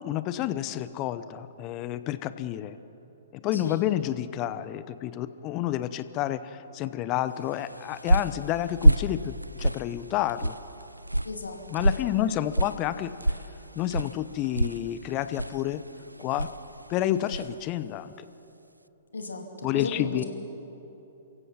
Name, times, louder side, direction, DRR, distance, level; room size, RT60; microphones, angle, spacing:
voice 1, 0.0-2.8 3.3-10.6 11.7-13.2 13.8-15.8 16.2-16.5 16.9-18.1 19.6-20.2, left 12 dB, 30° left, 14 dB, 0.8 m, -29 dB
sound 1, 7.5-17.6, right 1 dB, 90° right, 0.3 m, -28 dB
voice 2, 11.2-12.4 19.1-20.2, left 3 dB, 75° left, 3 dB, 2.6 m, -36 dB
28.5 x 16.0 x 5.9 m, 3.0 s
figure-of-eight pair, 115°, 0 cm